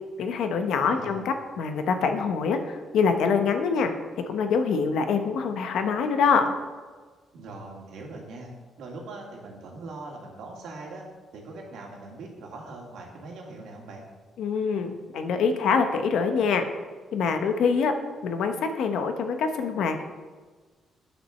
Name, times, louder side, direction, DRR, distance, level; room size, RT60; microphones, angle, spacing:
voice 1, 0.2-3.9 4.3-6.5 14.4-16.6 17.1-17.9 18.2-20.0, left 5 dB, 75° left, 7 dB, 1.0 m, -25 dB
voice 2, 0.8-1.2 7.3-8.5 8.8-11.0 11.3-14.0, right 2 dB, 80° right, 0 dB, 2.2 m, -41 dB
8.6 x 6.2 x 6.4 m, 1.4 s
cardioid pair, 90°, 0 cm